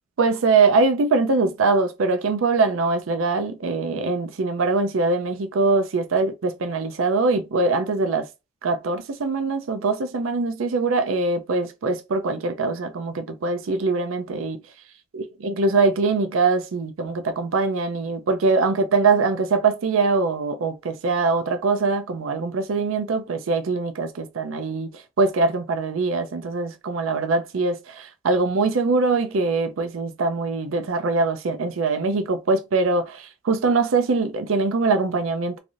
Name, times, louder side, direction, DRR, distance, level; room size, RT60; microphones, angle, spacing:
voice 1, 0.2-8.3 8.6-14.6 15.1-35.6, right 3 dB, 80° right, 0.5 m, -22 dB
3.3 x 2.6 x 2.4 m
head